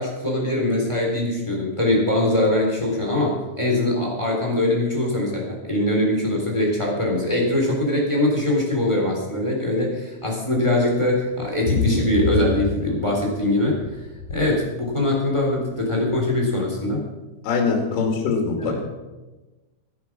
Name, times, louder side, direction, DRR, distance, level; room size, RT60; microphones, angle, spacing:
voice 1, 0.0-13.8 14.3-17.0 18.6-18.9, left 1 dB, 10° left, -1 dB, 2.6 m, -22 dB
sound 1, 11.4-13.4 13.7-14.4 15.4-15.5 15.8-15.9 16.2-16.3, left 4 dB, 50° left, 2.4 m, -25 dB
voice 2, 17.4-18.9, left 5 dB, 85° left, 1 dB, 5.0 m, -23 dB
16.5 x 9.8 x 6.0 m, 1.1 s
omnidirectional pair, 5.5 m